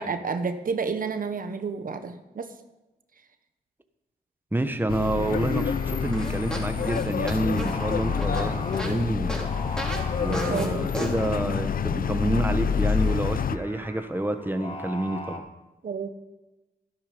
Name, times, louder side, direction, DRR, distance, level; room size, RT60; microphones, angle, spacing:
voice 1, 0.0-2.5 10.3-10.9 15.8-16.1, right 5 dB, 65° right, 8 dB, 1.2 m, -30 dB
voice 2, 4.5-9.5 10.2-15.4, right 1 dB, 15° right, 8 dB, 1.3 m, -28 dB
sound 1, 4.9-13.6, left 7 dB, 65° left, 0.7 m, -27 dB
Singing, 4.9-15.4, left 1 dB, 35° left, 2.6 m, -41 dB
sound 2, 6.1-9.0 9.3-9.5 9.8-10.0 10.3-10.7 10.9-11.1, right 1 dB, 5° left, 4.6 m, -34 dB
13.0 x 12.0 x 5.2 m, 1.0 s
cardioid pair, 55°, 16 cm